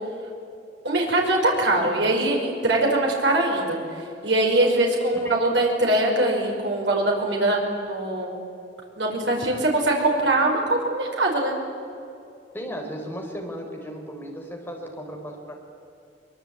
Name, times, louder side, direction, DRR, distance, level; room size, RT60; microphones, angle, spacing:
voice 1, 0.8-8.3 9.0-11.5, right 2 dB, 70° right, 0 dB, 5.3 m, -22 dB
voice 2, 12.5-15.6, equal, 10° left, 1 dB, 4.5 m, -35 dB
23.5 x 23.0 x 9.1 m, 2.6 s
head